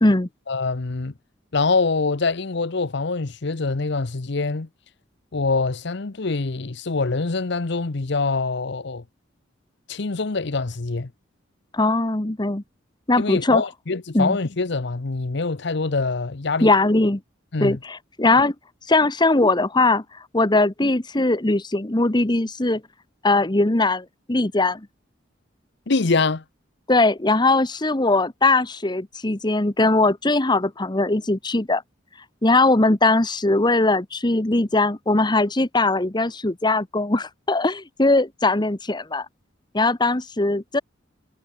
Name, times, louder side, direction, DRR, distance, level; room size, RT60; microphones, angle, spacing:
voice 1, 0.5-1.1 1.5-4.7 5.3-9.0 9.9-11.1 13.2-16.7 17.5-17.8 25.9-26.4, left 3 dB, 60° left, 0.9 m, -24 dB
voice 2, 11.7-12.6 13.1-13.6 14.1-14.4 16.6-17.2 17.6-18.5 18.9-22.8 23.2-24.8 26.9-31.8 32.4-39.3 39.7-40.8, left 2 dB, 20° left, 1.1 m, -20 dB
head